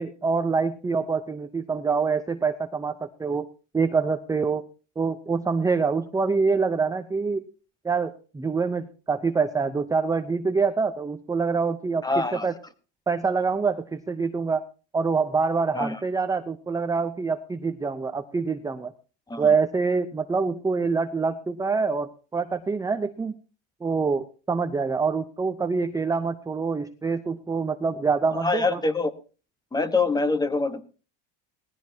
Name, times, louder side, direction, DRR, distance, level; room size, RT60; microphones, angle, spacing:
voice 1, 0.0-3.5 3.7-4.6 5.0-7.4 7.8-12.5 13.1-14.6 14.9-18.9 19.4-23.4 23.8-28.8, right 4 dB, 10° right, 8 dB, 0.7 m, -25 dB
voice 2, 12.0-12.5 15.7-16.0 19.3-19.5 28.3-29.1 29.7-30.8, left 3 dB, 10° left, 12 dB, 1.3 m, -25 dB
19.5 x 15.0 x 2.8 m, 0.35 s
supercardioid pair, 135°, 37 cm